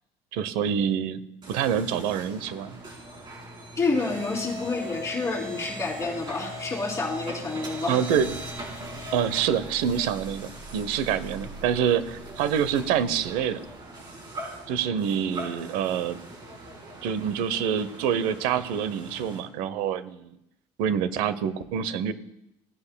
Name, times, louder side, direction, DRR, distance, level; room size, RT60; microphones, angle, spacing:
voice 1, 0.3-2.8 7.9-8.3 9.1-13.6 14.7-16.2 17.0-20.3 20.8-22.1, right 8 dB, 85° right, 14 dB, 0.8 m, -26 dB
sound 1, 1.4-19.4, equal, 30° right, 3.9 m, -40 dB
voice 2, 3.8-8.0, left 3 dB, 20° left, -1 dB, 3.0 m, -28 dB
17.5 x 9.7 x 2.2 m, 0.83 s
cardioid pair, 115°, 14 cm